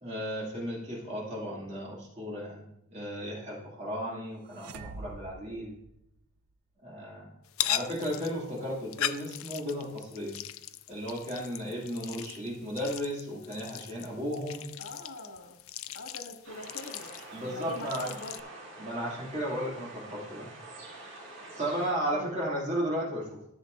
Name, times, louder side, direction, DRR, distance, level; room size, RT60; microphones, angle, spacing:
voice 1, 0.0-5.8 6.8-7.3 7.6-10.4 10.9-14.6 17.3-18.1 18.8-21.1 21.6-23.4, equal, 30° right, -5 dB, 2.5 m, -35 dB
sound 1, 4.5-6.5, right 3 dB, 80° right, 0.5 m, -46 dB
sound 2, 7.5-18.4, left 12 dB, 70° left, 0.4 m, -39 dB
voice 2, 14.8-15.6 15.9-17.1 17.4-18.4 22.1-22.4, left 2 dB, 90° left, 1 dB, 1.8 m, -44 dB
sound 3, 16.4-21.9, right 2 dB, 55° right, 2.1 m, -46 dB
14.0 x 7.0 x 2.6 m, 0.80 s
head